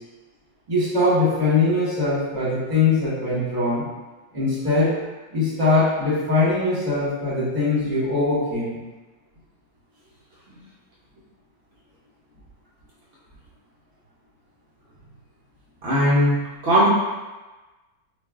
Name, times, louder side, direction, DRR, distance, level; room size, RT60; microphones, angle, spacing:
voice 1, 0.7-3.8 4.3-4.9 5.3-8.8, left 3 dB, 30° right, -9 dB, 1.0 m, -21 dB
voice 2, 15.8-16.9, equal, 70° right, -8 dB, 0.5 m, -19 dB
2.5 x 2.3 x 3.4 m, 1.2 s
omnidirectional pair, 1.7 m